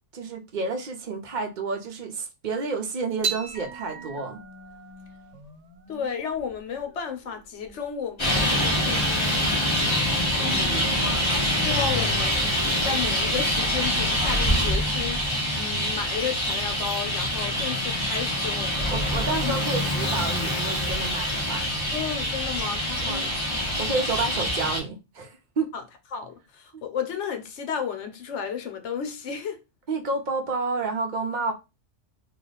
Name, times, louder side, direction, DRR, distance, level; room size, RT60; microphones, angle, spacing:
voice 1, 0.1-4.4 10.4-10.9 18.9-21.7 23.1-23.3 23.8-25.7 26.7-26.8 29.9-31.5, right 3 dB, 50° right, 0.7 m, -30 dB
sound 1, 3.2-9.8, right 5 dB, 80° right, 1.1 m, -38 dB
voice 2, 5.9-9.6 10.4-10.8 11.6-12.5 12.8-18.9 19.4-19.6 21.9-23.4 25.7-25.8 26.1-29.6, left 7 dB, 75° left, 1.0 m, -33 dB
Traffic noise roadway noise, 8.2-24.8, equal, 25° left, 1.1 m, -25 dB
3.3 x 2.4 x 3.8 m
omnidirectional pair, 1.2 m